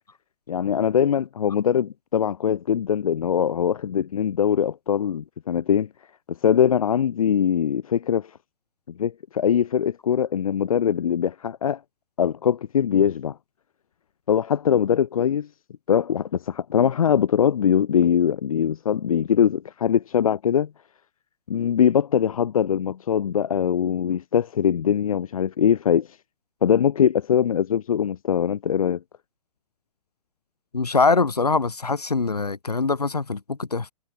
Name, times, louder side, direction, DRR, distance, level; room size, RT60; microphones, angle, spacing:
voice 1, 0.5-5.9 6.4-8.3 9.0-11.8 12.2-13.3 14.3-15.5 15.9-20.7 21.5-26.1 26.6-29.0, left 8 dB, 65° left, 0.7 m, -22 dB
voice 2, 30.7-33.9, left 4 dB, 80° left, 1.7 m, -23 dB
figure-of-eight pair, 115°, 20 cm